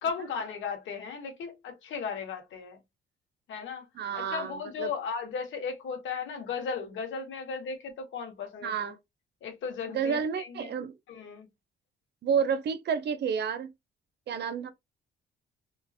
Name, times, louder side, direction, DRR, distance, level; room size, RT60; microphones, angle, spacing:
voice 1, 0.0-2.8 3.5-3.8 4.1-8.9 9.4-10.7 11.1-11.5, left 5 dB, 75° left, 1.4 m, -36 dB
voice 2, 3.9-4.9 8.6-9.0 9.9-10.9 12.2-13.7 14.3-14.7, right 7 dB, 60° right, 0.6 m, -30 dB
3.7 x 2.5 x 2.7 m
cardioid pair, 90°, 20 cm